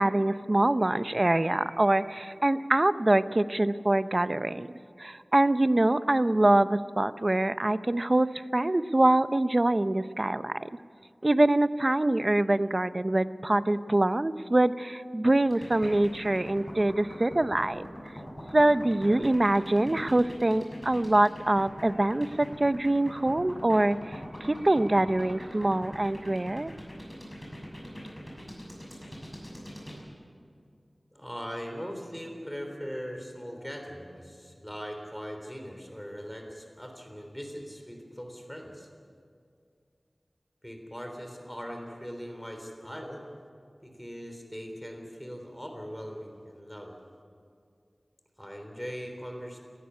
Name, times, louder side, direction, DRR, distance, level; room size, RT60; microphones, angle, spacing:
voice 1, 0.0-4.7 5.0-10.7 11.2-17.9 18.5-26.7, right 1 dB, 40° right, 13 dB, 0.6 m, -24 dB
sound 1, 15.5-30.0, equal, 25° left, 6.4 m, -42 dB
voice 2, 31.1-38.9 40.6-43.2 43.8-46.9 48.4-49.6, equal, 5° left, 3 dB, 3.5 m, -40 dB
19.5 x 14.0 x 9.7 m, 2.3 s
wide cardioid pair, 60°, 0 cm